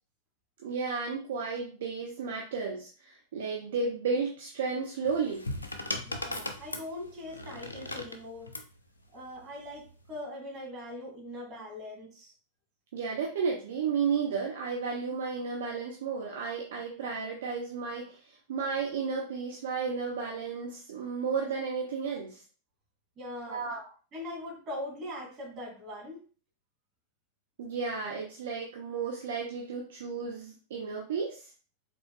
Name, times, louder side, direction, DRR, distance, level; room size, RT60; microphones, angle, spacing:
voice 1, 0.6-5.4 12.9-18.2 18.5-22.4 23.5-23.8 27.6-31.5, right 5 dB, 60° right, -2 dB, 0.8 m, -33 dB
sound 1, 5.0-8.7 9.8-10.2, left 2 dB, 80° left, 0.5 m, -38 dB
voice 2, 6.0-8.5 9.1-12.3 23.2-23.8 24.1-26.2, left 1 dB, 30° right, -2 dB, 2.2 m, -41 dB
5.0 x 3.8 x 2.2 m, 0.38 s
figure-of-eight pair, 90°, 0 cm